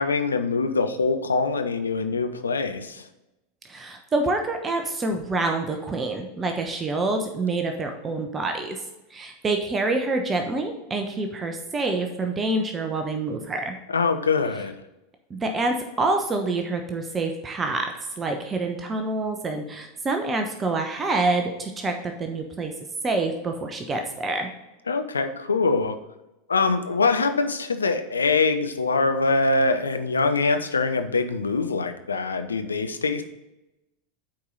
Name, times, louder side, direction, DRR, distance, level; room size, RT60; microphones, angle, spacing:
voice 1, 0.0-3.1 13.9-14.7 24.9-26.0 26.5-33.2, left 4 dB, 80° left, 8 dB, 0.7 m, -23 dB
voice 2, 3.6-8.8 9.1-13.7 15.3-22.7 23.0-24.5, right 2 dB, 20° right, 4 dB, 1.0 m, -27 dB
8.5 x 4.8 x 4.0 m, 0.96 s
figure-of-eight pair, 85°, 0 cm